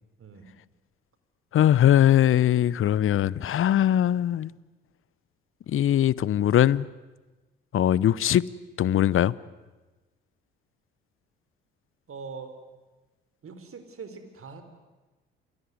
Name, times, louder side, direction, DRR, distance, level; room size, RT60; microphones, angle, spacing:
voice 1, 1.5-4.5 5.7-6.9 7.7-8.5 8.8-9.3, left 11 dB, 45° left, 0.8 m, -21 dB
voice 2, 12.1-12.6 13.4-14.6, right 5 dB, 45° right, 4.2 m, -42 dB
28.0 x 19.0 x 9.8 m
figure-of-eight pair, 50°, 31 cm